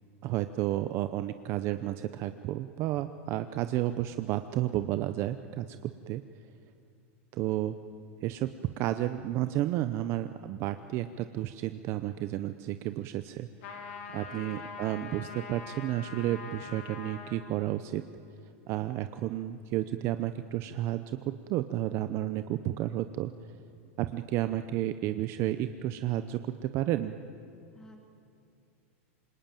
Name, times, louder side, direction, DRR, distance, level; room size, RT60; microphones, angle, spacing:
voice 1, 0.2-6.2 7.3-7.7 8.2-13.5 14.1-18.0 18.7-21.2 21.5-23.3 24.0-27.2, right 14 dB, 35° right, 11 dB, 0.7 m, -32 dB
sound 1, 13.6-17.5, left 5 dB, 65° left, 4.1 m, -43 dB
voice 2, 14.1-14.6 27.7-28.0, equal, 10° left, 3 dB, 3.0 m, -55 dB
26.5 x 22.0 x 9.1 m, 2.5 s
supercardioid pair, 160°, 7 cm